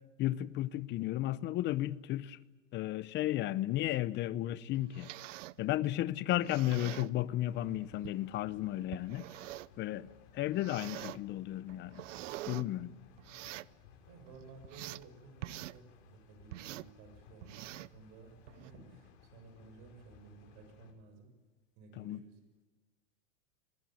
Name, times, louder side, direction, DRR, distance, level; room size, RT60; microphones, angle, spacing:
voice 1, 0.2-2.4 2.7-5.1 5.6-9.2 9.8-12.0 12.5-12.9 22.0-22.2, left 14 dB, 30° left, 0.7 m, -34 dB
sound 1, 4.7-5.6 6.3-7.1 8.0-8.2 8.9-9.8 10.5-11.2 11.7-12.7 13.2-13.7 14.3-15.1 15.4-15.8 16.5-16.9 17.4-18.0 18.5-18.7, right 17 dB, 65° right, 0.7 m, -45 dB
sound 2, 7.4-20.9, left 6 dB, 55° left, 5.3 m, -60 dB
voice 2, 14.1-18.3 18.6-21.3 21.8-22.3, right 4 dB, 50° right, 7.0 m, -55 dB
23.5 x 21.5 x 9.2 m
hypercardioid pair, 130°, 40 cm